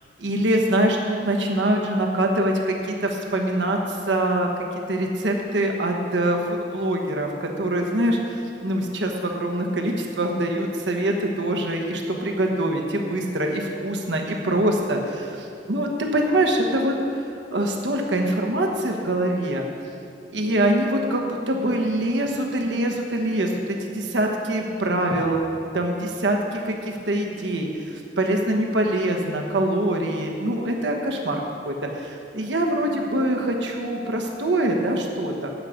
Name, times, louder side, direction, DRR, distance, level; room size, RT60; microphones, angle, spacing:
voice 1, 0.2-4.5 4.9-17.0 17.5-19.6 20.3-25.4 25.7-35.5, right 1 dB, 80° right, 1 dB, 1.2 m, -24 dB
9.5 x 8.4 x 6.4 m, 2.5 s
head